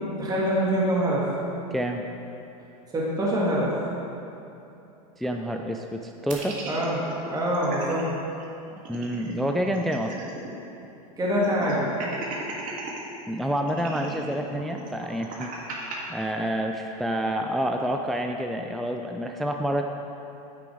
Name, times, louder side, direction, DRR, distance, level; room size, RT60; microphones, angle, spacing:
voice 1, 0.2-1.3 2.9-3.7 6.7-7.0 7.3-8.1 11.2-11.9, equal, 20° right, -5 dB, 1.9 m, -24 dB
voice 2, 1.7-2.0 5.2-6.6 8.7-10.1 13.3-15.8 16.1-19.8, equal, ahead, 3 dB, 0.3 m, -28 dB
sound 1, 6.3-8.0 8.4-8.5 8.8-10.5 10.8-10.9 11.4-13.0 13.7-16.0, right 3 dB, 45° right, 1.6 m, -37 dB
9.2 x 6.1 x 4.9 m, 2.8 s
hypercardioid pair, 110°, 20 cm